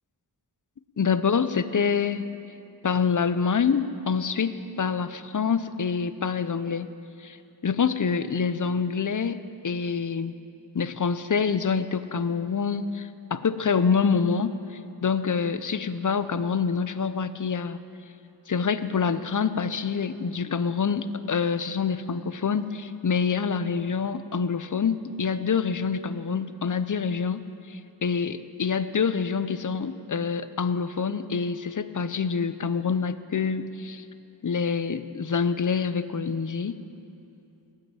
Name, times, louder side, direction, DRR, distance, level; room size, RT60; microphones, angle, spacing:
voice 1, 1.0-2.3 2.8-6.9 7.2-7.4 7.6-10.3 10.7-17.8 18.5-27.4 27.7-34.0 34.4-36.8, left 6 dB, 45° left, 13 dB, 0.6 m, -26 dB
16.0 x 5.7 x 8.9 m, 2.7 s
wide cardioid pair, 50°, 43 cm